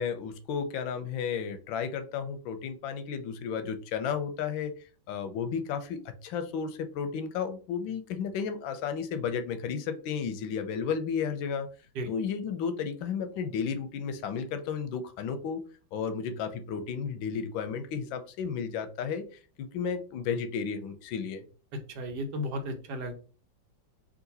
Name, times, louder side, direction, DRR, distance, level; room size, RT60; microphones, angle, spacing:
voice 1, 0.0-4.7 5.1-11.7 12.1-15.6 15.9-19.2 19.6-21.4, left 6 dB, 90° left, 9 dB, 1.4 m, -33 dB
voice 2, 21.9-23.1, equal, 65° right, 5 dB, 1.3 m, -34 dB
3.7 x 2.7 x 4.0 m, 0.37 s
omnidirectional pair, 2.0 m